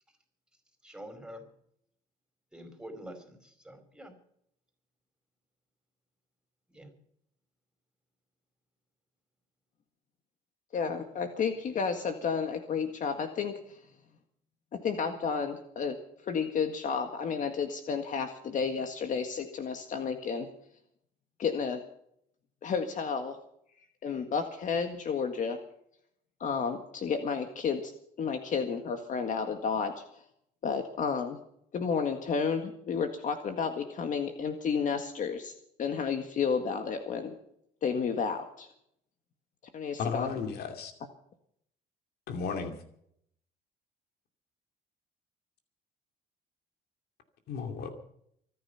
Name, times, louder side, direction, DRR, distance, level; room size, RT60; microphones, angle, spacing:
voice 1, 0.8-1.4 2.5-4.1 6.7-6.9, equal, 5° right, 6 dB, 4.7 m, -46 dB
voice 2, 10.7-13.8 14.7-15.9 16.3-20.5 21.4-21.8 22.6-23.4 24.0-25.6 26.4-27.9 28.2-30.0 30.6-31.4 31.7-35.5 35.8-37.4 37.8-38.7 39.7-40.3, left 6 dB, 50° left, 6 dB, 1.8 m, -31 dB
voice 3, 40.0-40.9 42.3-42.8 47.5-47.9, left 5 dB, 70° left, 5 dB, 2.5 m, -34 dB
24.5 x 9.8 x 5.8 m, 0.69 s
cardioid pair, 110°, 17 cm